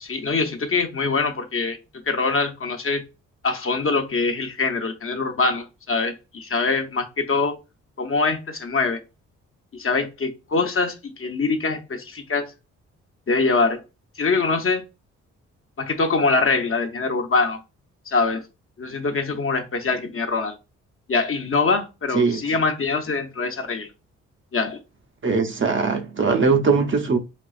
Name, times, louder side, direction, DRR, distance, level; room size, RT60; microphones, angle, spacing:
voice 1, 0.0-1.8 2.1-3.0 3.4-7.6 8.0-9.0 9.7-12.5 13.3-13.8 14.1-14.8 15.8-17.6 18.1-18.4 18.8-20.6 21.1-23.9 24.5-24.8, left 4 dB, 40° left, 0.9 m, -23 dB
voice 2, 25.2-27.2, right 4 dB, 35° right, 0.7 m, -20 dB
5.2 x 2.4 x 2.4 m
hypercardioid pair, 45°, 34 cm